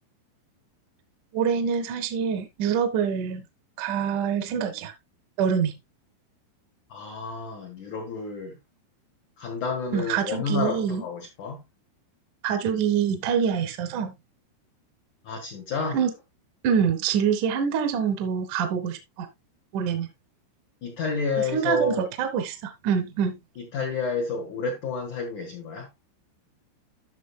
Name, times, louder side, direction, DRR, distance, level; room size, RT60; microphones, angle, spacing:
voice 1, 1.3-3.4 3.8-4.9 5.4-5.7 9.9-11.0 12.4-14.1 15.9-16.1 16.6-19.3 19.7-20.1 21.4-23.4, right 7 dB, 65° right, 2.1 m, -25 dB
voice 2, 6.9-8.5 9.4-11.6 15.2-16.0 20.8-22.0 23.6-25.9, left 4 dB, 60° left, 2.1 m, -30 dB
13.0 x 6.4 x 2.2 m
omnidirectional pair, 5.8 m